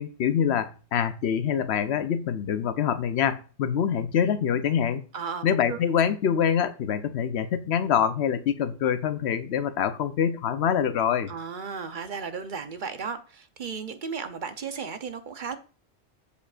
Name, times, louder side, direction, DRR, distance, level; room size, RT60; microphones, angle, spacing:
voice 1, 0.0-5.0 5.4-11.3, left 8 dB, 70° left, 0.9 m, -25 dB
voice 2, 5.1-5.8 11.3-15.6, right 5 dB, 50° right, 0.9 m, -35 dB
13.5 x 5.1 x 2.5 m
omnidirectional pair, 1.1 m